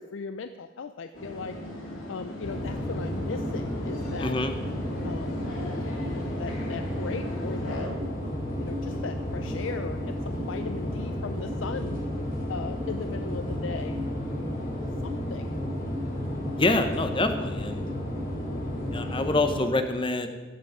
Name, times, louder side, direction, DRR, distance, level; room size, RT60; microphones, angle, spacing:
voice 1, 0.0-1.6 2.1-4.4 5.0-5.8 6.4-7.9 8.2-12.0 12.5-14.1 14.6-15.5, left 5 dB, 70° left, 9 dB, 0.4 m, -38 dB
sound 1, 1.1-7.9, left 1 dB, 85° left, 2.7 m, -39 dB
sound 2, 2.4-19.6, equal, 45° left, 3.1 m, -32 dB
voice 2, 4.2-4.5 16.6-17.8 18.9-20.3, left 2 dB, 25° left, 8 dB, 0.8 m, -26 dB
14.0 x 7.6 x 5.0 m, 1.3 s
head